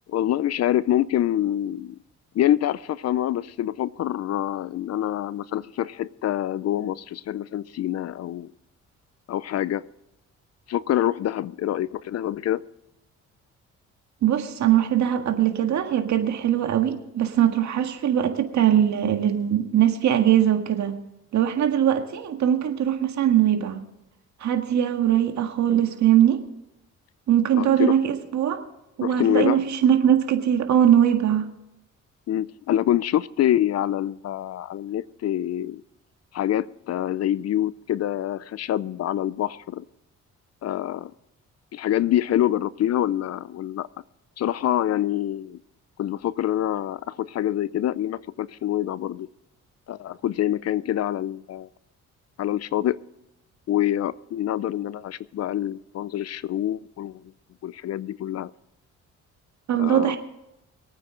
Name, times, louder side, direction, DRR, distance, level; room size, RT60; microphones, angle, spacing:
voice 1, 0.1-2.0 2.3-8.5 9.3-9.8 10.7-12.6 27.5-28.0 29.0-29.6 32.3-35.8 36.3-39.8 40.6-41.1 41.7-43.9 44.4-45.6 46.0-49.3 49.9-51.7 52.4-53.0 53.7-57.2 57.6-58.5 59.8-60.2, left 12 dB, 55° left, 20 dB, 0.5 m, -26 dB
voice 2, 14.2-20.9 21.3-23.8 24.4-26.4 27.3-28.6 29.0-31.4 59.7-60.2, right 10 dB, 65° right, 6 dB, 1.8 m, -21 dB
23.5 x 9.1 x 3.8 m, 0.92 s
cardioid pair, 90°, 30 cm